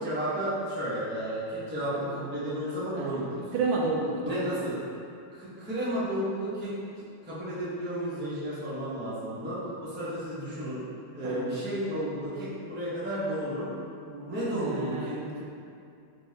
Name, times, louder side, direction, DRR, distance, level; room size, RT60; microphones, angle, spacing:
voice 1, 0.0-3.4 4.2-4.7 5.3-10.8 11.1-13.7 14.3-15.4, right 1 dB, 15° right, -10 dB, 0.4 m, -32 dB
voice 2, 3.5-4.4 11.2-11.5 14.1-15.4, right 3 dB, 85° right, -1 dB, 1.3 m, -31 dB
4.2 x 3.3 x 2.8 m, 2.5 s
omnidirectional pair, 2.0 m